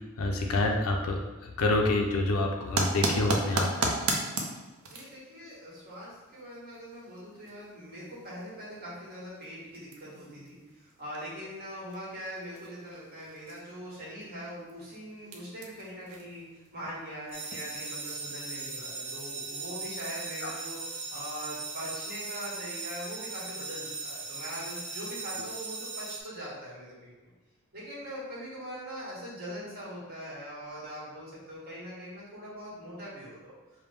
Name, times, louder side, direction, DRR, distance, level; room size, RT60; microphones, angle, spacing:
voice 1, 0.2-3.7 20.4-20.5, left 2 dB, 75° left, 2 dB, 0.4 m, -27 dB
sound 1, 2.6-17.8, right 2 dB, 70° right, 0.6 m, -38 dB
voice 2, 4.7-27.1 27.7-33.5, equal, 45° right, -7 dB, 1.5 m, -42 dB
sound 2, 17.3-26.2, right 4 dB, 25° right, 0.5 m, -39 dB
5.0 x 2.1 x 3.4 m, 1.2 s
head